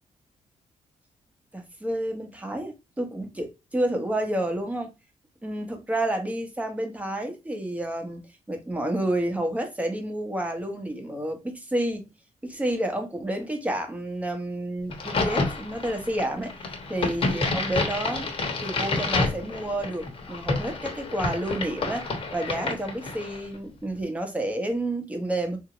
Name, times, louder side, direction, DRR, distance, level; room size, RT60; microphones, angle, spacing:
voice 1, 1.5-4.9 5.4-8.2 8.5-12.0 12.4-18.3 18.6-25.6, right 1 dB, 10° right, 1.0 m, -30 dB
Crack, 14.9-23.5, left 3 dB, 50° left, 1.1 m, -29 dB
3.6 x 2.7 x 2.9 m
cardioid pair, 115°, 13 cm